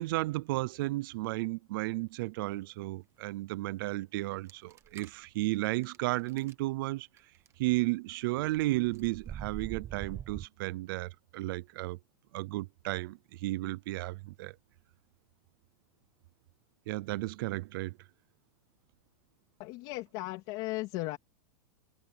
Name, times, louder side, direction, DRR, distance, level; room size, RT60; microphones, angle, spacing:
voice 1, 0.0-7.1 7.6-12.0 12.3-14.5 16.9-18.0, right 20 dB, 35° right, 0.5 m, -33 dB
sound 1, 4.5-5.1 5.8-6.0 6.3-6.5 7.2-7.5 8.4-10.5, right 10 dB, 15° right, 1.0 m, -43 dB
voice 2, 19.6-21.2, left 20 dB, 30° left, 2.4 m, -36 dB
supercardioid pair, 180°, 20 cm